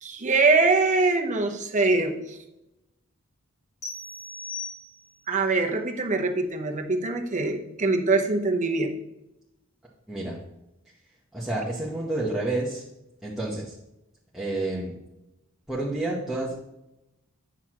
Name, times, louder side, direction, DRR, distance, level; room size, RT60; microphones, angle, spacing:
voice 1, 0.0-2.4 5.3-9.0, right 3 dB, 35° right, 4 dB, 0.9 m, -23 dB
sound 1, 3.8-5.3, left 3 dB, 35° left, 2.0 m, -38 dB
voice 2, 11.3-12.8 13.2-13.7 14.3-14.9 15.7-16.5, right 2 dB, 5° right, -7 dB, 1.1 m, -29 dB
9.5 x 6.0 x 3.0 m, 0.89 s
head